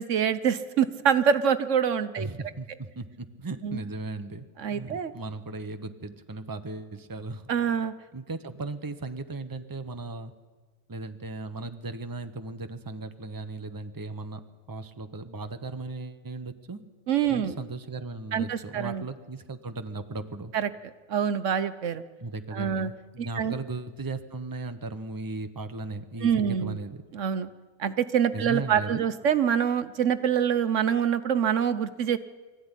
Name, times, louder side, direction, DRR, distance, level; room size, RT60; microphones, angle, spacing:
voice 1, 0.0-2.3 3.6-3.8 4.6-5.1 7.5-7.9 17.1-17.6 18.3-19.0 20.5-20.7 21.1-22.0 22.5-22.9 23.2-23.5 26.2-26.8 27.1-27.5 27.8-32.2, right 8 dB, 70° right, 12 dB, 1.2 m, -25 dB
voice 2, 2.2-7.7 8.1-10.3 10.9-14.4 14.7-16.8 17.3-20.5 22.2-27.0 28.3-29.1, right 3 dB, 20° right, 9 dB, 1.0 m, -37 dB
23.0 x 14.5 x 9.9 m, 1.4 s
omnidirectional pair, 1.3 m